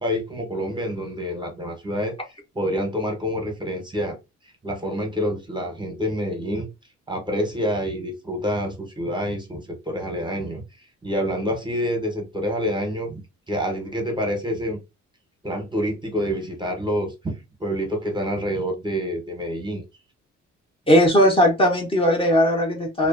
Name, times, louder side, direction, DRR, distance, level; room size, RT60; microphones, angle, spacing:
voice 1, 0.0-2.1 2.5-4.2 4.6-6.7 7.1-10.6 11.0-13.2 13.5-14.8 15.4-17.3 17.6-19.8, equal, 15° right, 3 dB, 0.8 m, -27 dB
voice 2, 20.9-23.1, equal, 20° left, 0 dB, 0.6 m, -18 dB
2.4 x 2.1 x 2.4 m, 0.25 s
cardioid pair, 90°, 30 cm